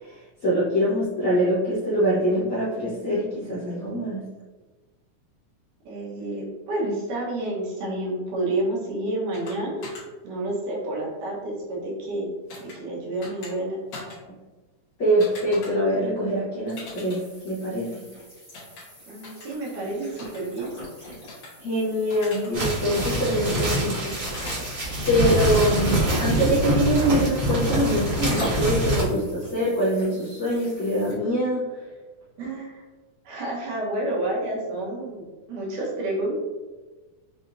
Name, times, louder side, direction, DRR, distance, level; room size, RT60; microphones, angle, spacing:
voice 1, 0.0-4.2 15.0-18.0 21.6-24.1 25.1-31.6, equal, 80° left, -9 dB, 0.9 m, -24 dB
voice 2, 5.9-9.8 10.2-12.3 12.6-13.8 19.1-20.7 32.4-32.8 33.3-36.4, right 1 dB, 80° right, -4 dB, 2.8 m, -29 dB
sound 1, 9.3-9.5 9.8-10.0 12.5-12.8 13.2-13.5 13.9-14.2 15.2-15.7 16.8-17.2 18.5-18.8 19.2-19.5 20.2-20.4 21.3-21.5 22.1-22.5 23.5-23.7 24.3-24.6, left 3 dB, 60° left, 2.5 m, -40 dB
sound 2, 16.6-31.1, equal, 45° left, 0.6 m, -41 dB
sound 3, 22.5-29.0, right 1 dB, 40° right, 1.2 m, -25 dB
6.6 x 2.9 x 2.6 m, 1.2 s
omnidirectional pair, 3.6 m